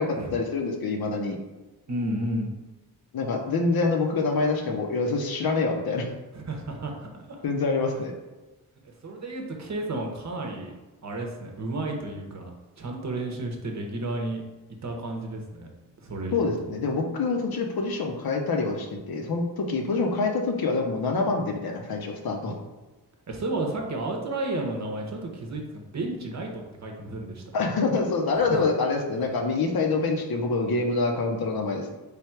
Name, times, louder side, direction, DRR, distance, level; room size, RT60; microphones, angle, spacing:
voice 1, 0.0-1.4 3.1-6.1 7.4-8.1 16.3-22.5 27.5-31.8, left 3 dB, 65° left, 2 dB, 0.7 m, -26 dB
voice 2, 1.9-2.5 6.3-7.4 9.0-10.7 11.0-12.5 12.8-14.4 14.8-15.7 16.0-16.7 23.3-27.4 28.4-28.6, right 2 dB, 45° right, 2 dB, 0.8 m, -32 dB
3.3 x 2.3 x 4.4 m, 1.1 s
cardioid pair, 70°, 39 cm